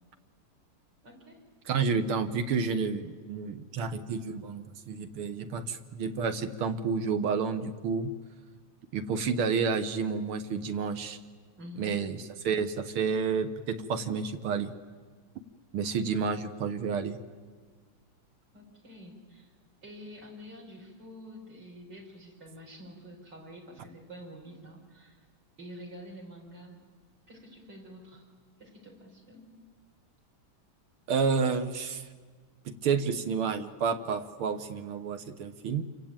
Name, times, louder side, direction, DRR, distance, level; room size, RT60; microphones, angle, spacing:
voice 1, 1.0-1.4 11.6-12.0 18.5-19.5 19.8-25.2 25.6-26.8 27.3-28.2 28.6-29.5, equal, 55° right, 1 dB, 5.5 m, -47 dB
voice 2, 1.7-8.1 8.9-11.2 11.8-12.2 12.4-14.7 15.7-17.2 31.1-32.0 32.7-35.8, right 5 dB, 80° right, 9 dB, 2.1 m, -30 dB
27.5 x 24.0 x 9.0 m, 1.5 s
omnidirectional pair, 2.4 m